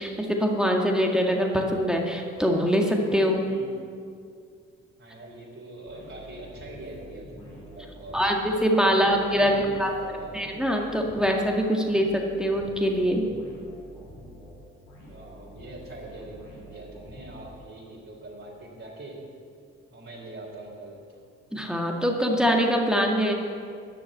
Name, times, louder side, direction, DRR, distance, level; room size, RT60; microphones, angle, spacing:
voice 1, 0.0-3.4 8.1-9.9 10.3-13.2 21.5-23.3, equal, ahead, 0 dB, 2.0 m, -23 dB
voice 2, 5.0-8.2 8.9-10.5 15.1-19.2 19.9-21.2, right 2 dB, 45° right, -5 dB, 3.7 m, -43 dB
sound 1, 5.9-18.0, equal, 85° left, 3.1 m, -47 dB
12.0 x 6.2 x 8.2 m, 2.3 s
hypercardioid pair, 50°, 31 cm